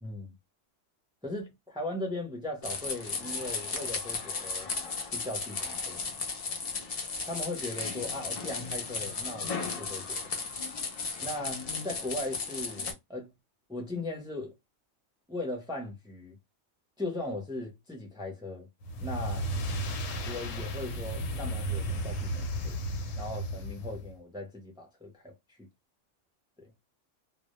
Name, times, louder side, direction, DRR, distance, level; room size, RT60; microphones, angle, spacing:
voice 1, 0.0-0.3 1.2-4.7 5.1-6.0 7.2-10.2 11.2-13.3 13.7-14.5 15.3-16.4 17.0-18.7 19.0-19.5 20.2-22.8 23.2-25.3 25.6-25.7, left 2 dB, 5° right, 0.4 m, -38 dB
sound 1, 2.6-12.9, left 4 dB, 60° left, 0.4 m, -35 dB
sound 2, 18.8-24.1, right 1 dB, 85° left, 0.9 m, -34 dB
2.1 x 2.0 x 2.9 m
omnidirectional pair, 1.3 m